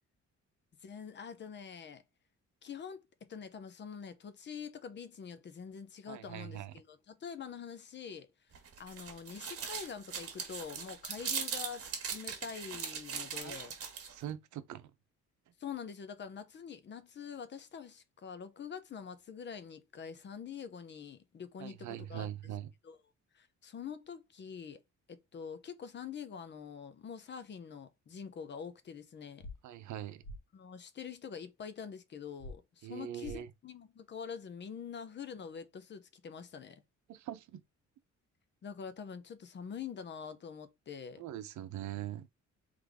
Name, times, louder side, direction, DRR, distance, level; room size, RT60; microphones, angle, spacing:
voice 1, 0.8-2.0 2.6-3.0 3.3-8.3 8.8-13.7 15.6-22.3 22.8-23.0 23.3-24.8 25.1-29.5 30.5-36.8 38.6-41.2, left 7 dB, 40° left, 0.6 m, -45 dB
voice 2, 6.1-6.7 13.3-13.6 14.1-14.9 21.6-22.7 29.6-30.2 32.8-33.5 37.1-37.6 41.2-42.3, right 12 dB, 75° right, 0.7 m, -42 dB
sound 1, 8.5-14.2, right 6 dB, 50° right, 1.3 m, -40 dB
sound 2, 29.4-29.5 30.2-30.4 32.4-32.5 33.2-33.4, left 1 dB, 85° left, 1.7 m, -44 dB
3.8 x 3.1 x 3.5 m
cardioid pair, 150°, 30 cm